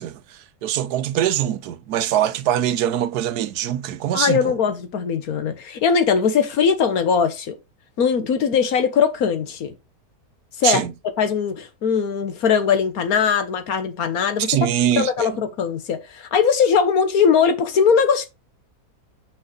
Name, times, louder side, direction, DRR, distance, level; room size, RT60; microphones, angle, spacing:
voice 1, 0.0-4.5 10.6-10.9 14.5-15.3, right 11 dB, 85° right, 1.2 m, -23 dB
voice 2, 4.1-7.5 8.0-9.7 10.6-10.8 11.2-14.6 15.0-18.3, left 6 dB, 70° left, 1.5 m, -20 dB
6.0 x 5.3 x 3.9 m
omnidirectional pair, 1.7 m